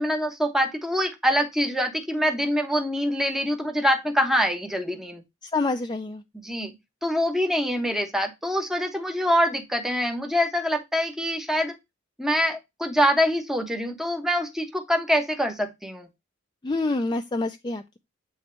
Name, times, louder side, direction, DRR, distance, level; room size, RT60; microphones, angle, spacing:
voice 1, 0.0-5.2 6.4-6.7 7.0-11.8 12.2-16.1, equal, ahead, 1.0 m, -25 dB
voice 2, 5.4-6.2 16.6-18.0, left 3 dB, 20° left, 0.4 m, -27 dB
8.2 x 3.2 x 4.4 m
head